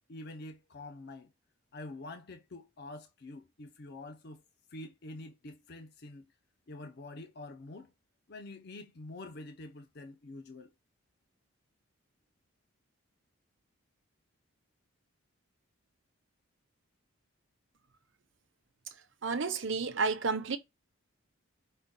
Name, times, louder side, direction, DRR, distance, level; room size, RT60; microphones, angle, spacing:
voice 1, 0.1-1.3 1.7-4.4 4.7-6.3 6.7-7.9 8.3-10.7, left 2 dB, 50° left, 0.5 m, -46 dB
voice 2, 19.2-20.6, right 4 dB, 60° right, 0.7 m, -31 dB
5.5 x 2.3 x 3.8 m
head